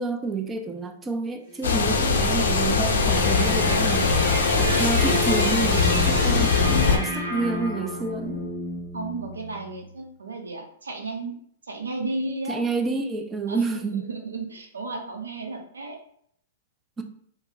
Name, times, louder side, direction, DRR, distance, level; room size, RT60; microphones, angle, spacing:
voice 1, 0.0-8.5 12.5-14.1 17.0-17.1, right 4 dB, 15° right, 6 dB, 0.4 m, -29 dB
sound 1, 1.5-9.8, equal, 30° right, 1.1 m, -31 dB
sound 2, 1.6-7.0, left 5 dB, 75° left, 0.5 m, -21 dB
voice 2, 3.6-4.4 8.9-11.4 11.7-12.6 13.5-16.0, right 2 dB, 90° right, 3 dB, 0.6 m, -34 dB
3.4 x 2.0 x 2.5 m, 0.65 s
hypercardioid pair, 120°, 0 cm